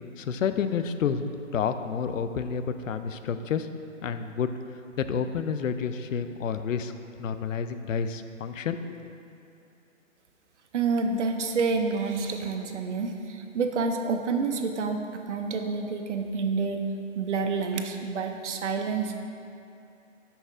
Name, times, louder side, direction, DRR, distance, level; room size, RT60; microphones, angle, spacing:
voice 1, 0.2-3.7 4.0-4.5 5.0-6.9 7.2-9.0, left 6 dB, 75° left, 10 dB, 0.5 m, -29 dB
voice 2, 10.7-16.9 17.2-19.2, right 4 dB, 60° right, 5 dB, 0.7 m, -28 dB
5.7 x 5.5 x 3.6 m, 2.6 s
hypercardioid pair, 160°, 39 cm